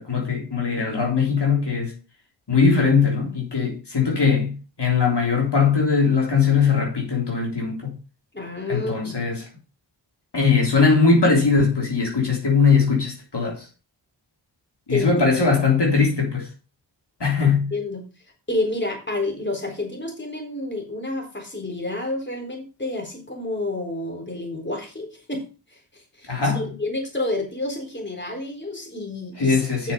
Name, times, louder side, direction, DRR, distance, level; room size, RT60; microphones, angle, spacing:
voice 1, 0.0-1.9 2.5-8.0 8.7-9.4 10.3-13.7 14.9-16.5 17.2-17.7 26.3-26.6 29.4-29.9, left 5 dB, 60° left, 3.6 m, -20 dB
voice 2, 8.3-9.2 14.9-15.1 17.4-18.0 18.5-29.6 29.8-29.9, left 2 dB, 25° left, 3.9 m, -29 dB
8.0 x 6.5 x 5.4 m
cardioid pair, 40°, 46 cm